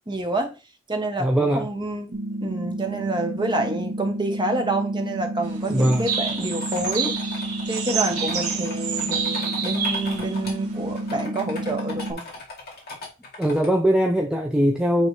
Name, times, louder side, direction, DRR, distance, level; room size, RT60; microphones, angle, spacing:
voice 1, 0.1-0.6 0.9-2.2 2.4-7.1 7.7-12.2, right 2 dB, 20° right, 1.0 m, -28 dB
voice 2, 1.2-1.7 5.7-6.1 13.4-15.1, equal, 5° right, 0.5 m, -21 dB
sound 1, 2.1-12.1, right 1 dB, 50° right, 1.1 m, -31 dB
sound 2, 5.4-11.2, right 6 dB, 80° right, 1.9 m, -29 dB
sound 3, 5.8-10.6 11.0-13.7, left 2 dB, 45° left, 2.1 m, -39 dB
9.0 x 3.3 x 3.2 m
head